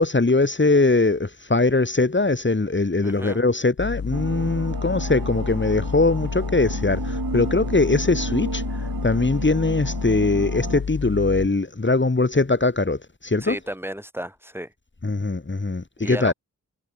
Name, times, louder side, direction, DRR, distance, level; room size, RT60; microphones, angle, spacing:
voice 1, 0.0-13.6 15.0-16.3, left 3 dB, 35° left, 2.8 m, -21 dB
voice 2, 3.0-3.4 13.4-14.7 16.0-16.3, equal, 5° right, 5.5 m, -33 dB
sound 1, 3.8-11.5, left 6 dB, 90° left, 2.1 m, -30 dB
sound 2, 4.1-10.8, right 5 dB, 75° right, 2.6 m, -33 dB
wide cardioid pair, 90°, 34 cm